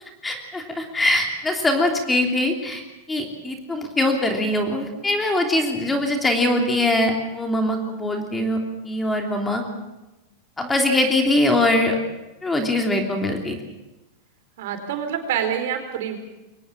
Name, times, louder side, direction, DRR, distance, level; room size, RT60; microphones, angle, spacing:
voice 1, 0.2-2.8 3.1-8.6 8.8-9.6 10.6-12.0 12.4-13.6, left 1 dB, 10° left, 3 dB, 3.1 m, -22 dB
voice 2, 14.6-16.2, right 9 dB, 70° right, 6 dB, 4.6 m, -26 dB
23.5 x 18.5 x 7.5 m, 1.0 s
supercardioid pair, 130°, 0 cm